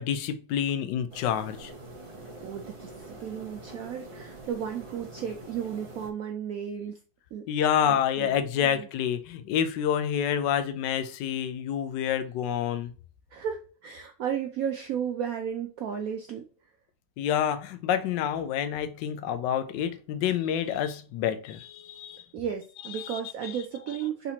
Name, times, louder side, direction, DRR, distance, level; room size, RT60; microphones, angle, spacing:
voice 1, 0.0-1.7 7.5-12.9 17.2-22.2 23.0-23.5, left 9 dB, 75° left, 1.2 m, -28 dB
sound 1, 1.1-6.1, right 2 dB, 45° right, 0.4 m, -45 dB
voice 2, 2.4-7.0 7.3-7.5 7.9-8.9 13.3-16.5 22.3-24.3, right 8 dB, 75° right, 0.8 m, -34 dB
4.3 x 4.0 x 2.8 m
omnidirectional pair, 2.0 m